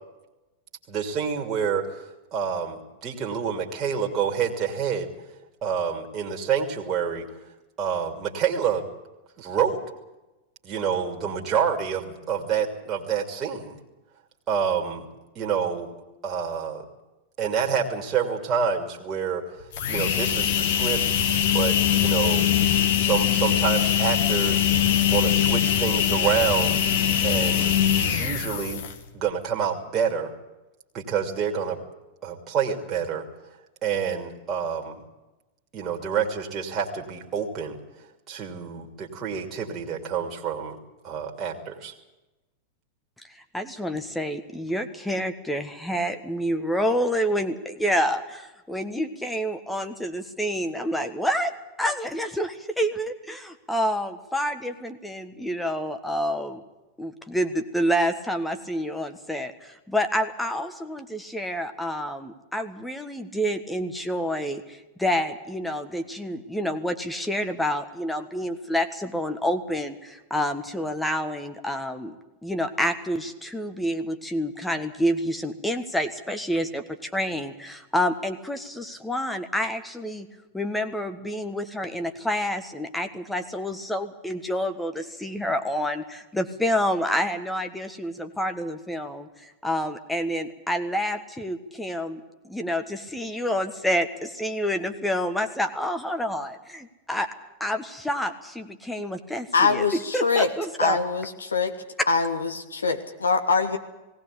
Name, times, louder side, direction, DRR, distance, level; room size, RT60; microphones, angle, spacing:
voice 1, 0.9-1.9 2.3-5.1 5.6-7.3 7.8-8.9 9.4-9.8 10.6-13.8 14.5-15.1 15.3-15.9 16.2-16.8 17.4-19.4 19.9-21.0 21.5-22.5 23.0-24.7 25.0-26.8 27.2-27.7 28.0-28.8 29.1-30.3 30.9-31.8 32.2-33.2 33.8-35.0 35.7-37.8 38.3-40.8 41.0-41.9, right 7 dB, 30° right, 0 dB, 2.8 m, -27 dB
sound 1, 19.6-29.1, left 9 dB, 55° left, 2.0 m, -22 dB
voice 2, 43.3-51.5 51.8-56.6 57.0-72.1 72.4-80.3 80.5-97.3 97.6-99.8 100.1-101.0 102.0-102.1, equal, 5° left, 7 dB, 1.5 m, -28 dB
voice 3, 99.5-100.5 100.8-101.7 102.1-103.8, left 4 dB, 75° left, 6 dB, 1.9 m, -23 dB
19.0 x 18.0 x 8.5 m, 1.0 s
figure-of-eight pair, 90°, 0 cm